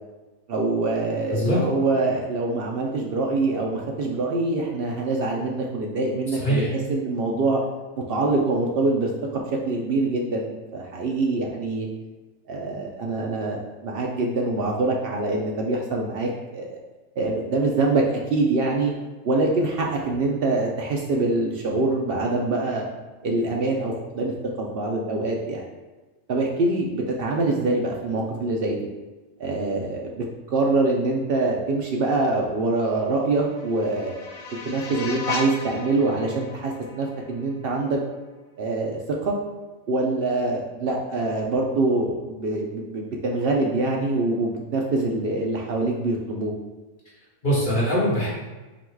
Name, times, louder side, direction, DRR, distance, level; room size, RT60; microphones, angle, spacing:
voice 1, 0.5-6.6 6.9-7.6 8.1-11.9 12.5-16.7 17.2-18.9 19.2-22.9 23.2-25.6 26.3-28.9 29.4-30.2 30.5-34.2 34.6-38.0 38.6-39.4 39.9-46.5, right 2 dB, 65° right, -1 dB, 0.6 m, -24 dB
voice 2, 1.3-1.6 6.4-6.7 47.4-48.3, equal, 40° left, -7 dB, 1.3 m, -22 dB
sound 1, 33.0-38.0, left 4 dB, 85° left, 1.1 m, -36 dB
3.8 x 2.3 x 4.5 m, 1.2 s
omnidirectional pair, 1.5 m